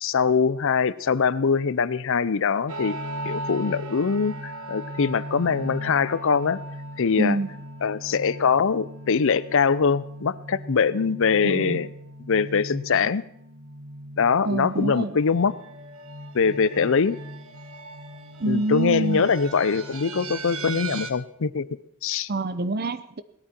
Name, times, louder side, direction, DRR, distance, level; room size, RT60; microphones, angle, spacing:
voice 1, 0.0-3.0 3.2-6.6 7.0-7.4 7.8-11.9 12.3-13.2 14.2-15.6 16.3-17.2 18.5-21.7 22.0-22.3, left 5 dB, 60° left, 18 dB, 0.6 m, -23 dB
sound 1, 2.7-21.1, right 1 dB, 65° right, 1.3 m, -38 dB
voice 2, 7.2-7.5 11.4-11.8 14.4-15.2 18.4-19.2 22.3-23.2, right 2 dB, 45° right, 12 dB, 0.8 m, -26 dB
18.5 x 12.5 x 4.4 m, 0.73 s
head